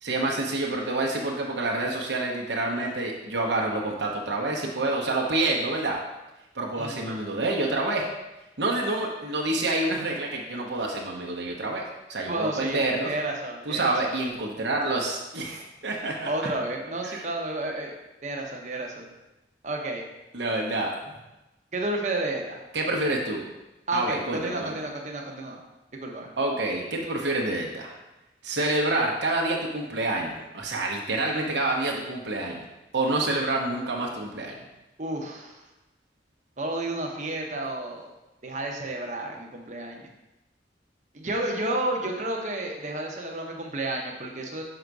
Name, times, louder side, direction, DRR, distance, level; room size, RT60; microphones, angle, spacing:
voice 1, 0.0-6.0 6.5-8.1 8.6-13.1 13.6-16.3 17.0-17.2 20.3-21.1 22.7-23.5 23.9-24.8 26.4-28.0 28.4-32.6 32.9-34.6, right 2 dB, 75° right, -1 dB, 1.0 m, -27 dB
voice 2, 12.3-14.1 16.3-17.9 18.2-19.1 19.6-20.0 21.7-22.6 23.9-25.6 26.0-26.3 35.0-35.6 36.6-38.0 38.4-40.0 41.1-44.6, right 2 dB, 40° right, 1 dB, 0.9 m, -31 dB
6.5 x 3.9 x 4.7 m, 1.0 s
head